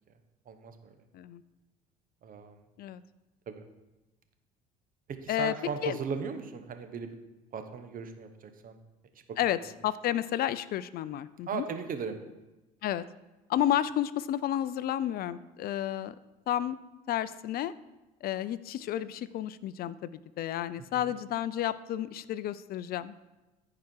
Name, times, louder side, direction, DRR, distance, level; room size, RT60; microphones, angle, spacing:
voice 1, 0.5-1.0 2.2-2.6 3.5-3.6 5.1-7.1 7.5-8.8 9.1-9.2 11.5-12.2 20.9-21.2, right 6 dB, 50° right, 8 dB, 1.2 m, -37 dB
voice 2, 9.4-11.6 12.8-13.0 13.5-16.1 16.5-16.8 17.1-17.7 18.2-23.1, left 12 dB, 55° left, 16 dB, 0.5 m, -31 dB
14.5 x 4.9 x 4.6 m, 1.1 s
supercardioid pair, 75°, 19 cm